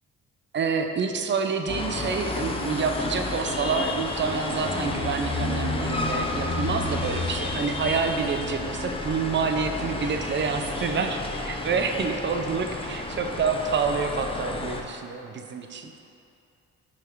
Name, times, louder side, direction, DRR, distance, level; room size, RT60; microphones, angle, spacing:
voice 1, 0.5-16.0, right 5 dB, 40° right, 5 dB, 0.5 m, -28 dB
sound 1, 1.7-14.8, left 2 dB, 20° left, 0.5 m, -31 dB
sound 2, 6.2-10.0, left 1 dB, 70° left, 1.5 m, -49 dB
5.5 x 4.1 x 4.5 m, 2.7 s
cardioid pair, 90°, 30 cm